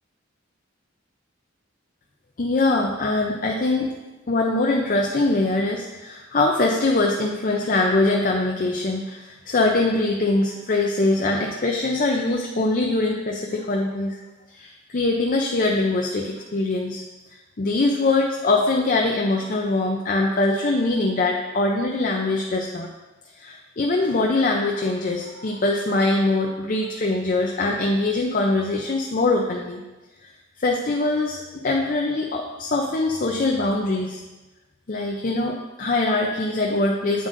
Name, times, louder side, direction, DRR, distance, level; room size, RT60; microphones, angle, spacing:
voice 1, 2.4-3.9 4.3-14.2 14.5-17.0 17.6-22.9 23.4-29.8 30.6-34.2 34.9-37.3, left 2 dB, 40° left, 0 dB, 0.5 m, -22 dB
8.0 x 7.3 x 2.6 m, 1.1 s
head